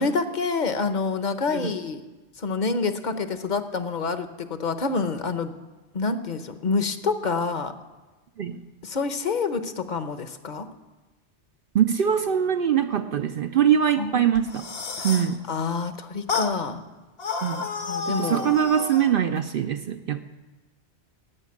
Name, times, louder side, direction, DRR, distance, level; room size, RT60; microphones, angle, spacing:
voice 1, 0.0-2.0 2.4-5.5 5.9-7.7 8.8-10.7 14.0-14.2 15.0-15.1 15.5-16.8 17.7-18.5, left 4 dB, 45° left, 10 dB, 0.9 m, -27 dB
voice 2, 11.7-14.6 15.0-15.4 17.4-17.7 18.2-20.2, right 9 dB, 60° right, 7 dB, 0.7 m, -23 dB
sound 1, 14.4-15.4 16.3-16.6 17.2-19.1, left 4 dB, 60° left, 1.1 m, -31 dB
12.0 x 8.1 x 9.5 m, 1.2 s
omnidirectional pair, 1.2 m